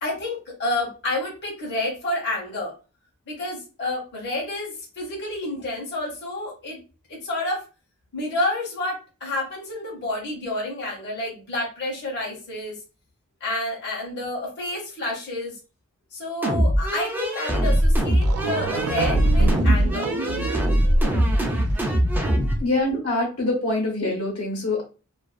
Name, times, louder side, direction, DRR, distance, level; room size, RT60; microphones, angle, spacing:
voice 1, 0.0-2.7 3.3-6.8 7.1-7.6 8.1-12.8 13.4-15.6 16.1-20.1, left 2 dB, 55° left, -3 dB, 0.9 m, -29 dB
sound 1, 16.4-22.6, equal, 10° right, 0.4 m, -21 dB
sound 2, 17.8-17.9 18.1-21.9, right 4 dB, 90° right, 0.3 m, -28 dB
voice 2, 22.6-24.8, left 2 dB, 90° left, -2 dB, 1.1 m, -24 dB
2.5 x 2.3 x 2.4 m, 0.33 s
head